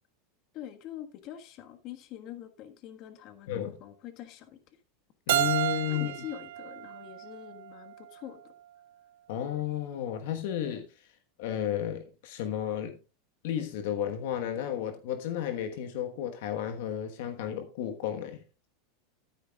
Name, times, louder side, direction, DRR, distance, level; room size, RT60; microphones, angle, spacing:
voice 1, 0.5-4.6 5.9-8.5, left 11 dB, 50° left, 1.5 m, -44 dB
voice 2, 5.3-6.2 9.3-10.9 11.4-13.0 13.4-18.4, left 10 dB, 70° left, 1.3 m, -33 dB
Keyboard (musical), 5.3-8.1, right 14 dB, 80° right, 0.6 m, -31 dB
12.0 x 10.5 x 2.3 m
supercardioid pair, 120°, 0 cm